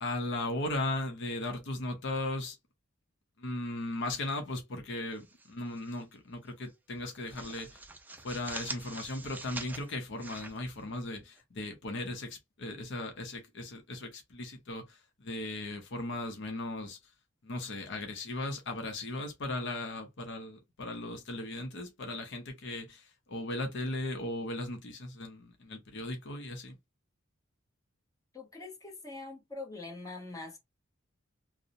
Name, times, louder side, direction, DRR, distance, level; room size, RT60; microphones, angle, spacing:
voice 1, 0.0-2.6 3.4-7.8 8.2-17.0 17.4-26.8, left 2 dB, 60° left, 0.6 m, -37 dB
sound 1, 5.1-6.0 6.3-6.5 6.9-11.4, right 2 dB, 10° right, 0.3 m, -45 dB
voice 2, 28.3-30.6, left 3 dB, 15° left, 0.8 m, -43 dB
2.7 x 2.0 x 2.5 m
head